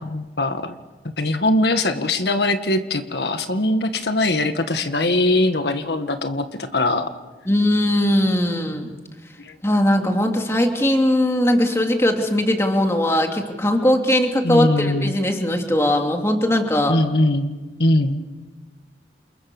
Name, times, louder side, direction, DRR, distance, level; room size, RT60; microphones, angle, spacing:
voice 1, 0.0-0.7 1.2-7.1 9.4-9.5 14.4-15.2 16.9-18.2, left 1 dB, 75° left, 7 dB, 1.7 m, -21 dB
voice 2, 7.5-8.9 9.6-17.0, left 1 dB, 15° left, 3 dB, 2.8 m, -19 dB
29.0 x 28.5 x 7.1 m, 1.2 s
head